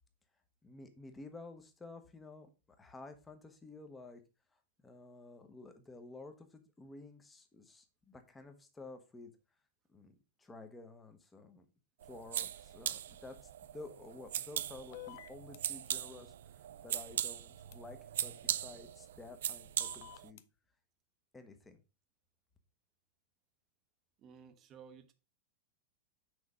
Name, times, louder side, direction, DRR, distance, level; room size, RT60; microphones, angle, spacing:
voice 1, 0.6-2.5 2.8-4.2 4.8-9.3 9.9-11.7 12.0-13.4 13.7-20.4 21.3-21.8, left 3 dB, 10° left, 1.0 m, -52 dB
sound 1, 12.0-20.3, right 11 dB, 85° right, 0.4 m, -40 dB
sound 2, 14.9-15.6 17.7-17.8 19.8-20.4, left 15 dB, 55° left, 0.5 m, -49 dB
voice 2, 24.2-25.1, right 6 dB, 25° right, 0.9 m, -55 dB
6.3 x 4.2 x 4.9 m
supercardioid pair, 160°, 0 cm